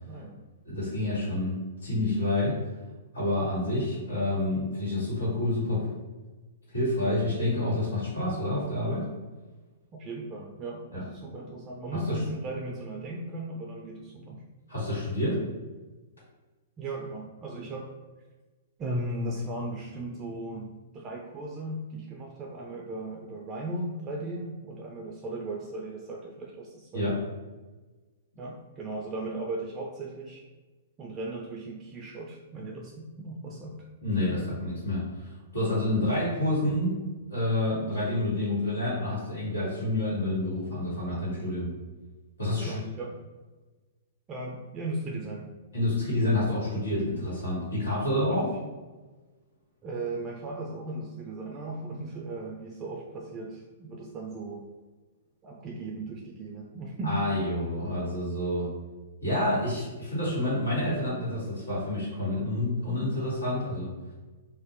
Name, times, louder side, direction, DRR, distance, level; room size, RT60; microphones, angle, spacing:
voice 1, 0.0-0.4 9.9-14.4 16.8-17.9 18.8-27.1 28.4-30.4 31.0-33.8 42.6-43.1 44.3-45.4 48.3-48.6 49.8-54.7 55.4-57.2, right 2 dB, 25° right, -1 dB, 0.3 m, -37 dB
voice 2, 0.6-2.6 3.1-5.9 6.7-9.0 10.9-11.0 12.1-12.2 14.7-15.4 26.9-27.2 34.0-37.0 37.3-41.7 42.4-42.8 45.7-48.5 57.0-58.7 59.2-63.9, left 1 dB, 80° left, -7 dB, 1.3 m, -28 dB
2.4 x 2.0 x 2.6 m, 1.3 s
hypercardioid pair, 115°, 0 cm